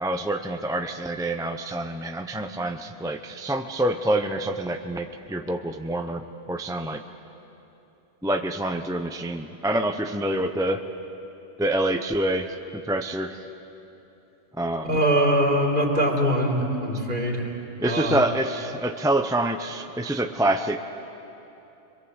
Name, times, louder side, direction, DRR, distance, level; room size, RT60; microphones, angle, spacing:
voice 1, 0.0-7.0 8.2-10.8 11.6-13.4 14.6-15.0 17.8-20.8, right 1 dB, 5° right, 6 dB, 0.6 m, -26 dB
voice 2, 14.9-17.5 17.8-18.2, equal, 45° right, -1 dB, 3.5 m, -22 dB
25.5 x 22.5 x 8.1 m, 3.0 s
omnidirectional pair, 1.2 m